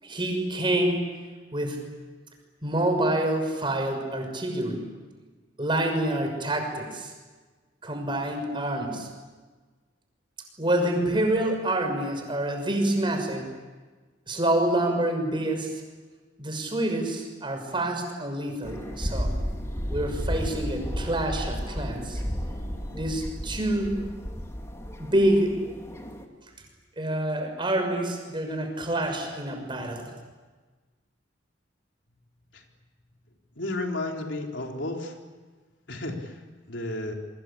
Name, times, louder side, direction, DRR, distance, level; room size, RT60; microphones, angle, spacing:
voice 1, 0.0-1.1 1.5-1.8 2.6-4.9 5.6-7.1 7.8-9.1 10.6-13.5 14.3-15.7 16.4-19.3 19.9-22.2 22.9-24.1 25.0-25.6 27.0-30.1, right 1 dB, 25° right, 4 dB, 6.2 m, -27 dB
sound 1, 18.6-26.2, equal, 15° left, 2.7 m, -33 dB
voice 2, 33.6-35.2 35.9-37.1, left 2 dB, 85° left, 2 dB, 3.9 m, -33 dB
28.0 x 24.0 x 8.7 m, 1.3 s
head